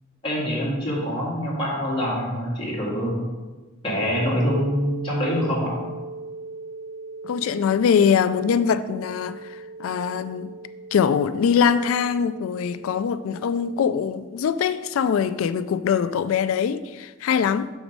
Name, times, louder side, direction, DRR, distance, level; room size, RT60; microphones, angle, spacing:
voice 1, 0.2-3.1 3.8-5.8, equal, 25° left, 2.1 m, -25 dB
sound 1, 3.9-13.8, right 3 dB, 35° right, 1.2 m, -39 dB
voice 2, 7.2-10.5 10.9-17.7, left 7 dB, 75° left, 0.3 m, -23 dB
6.1 x 4.7 x 5.3 m
head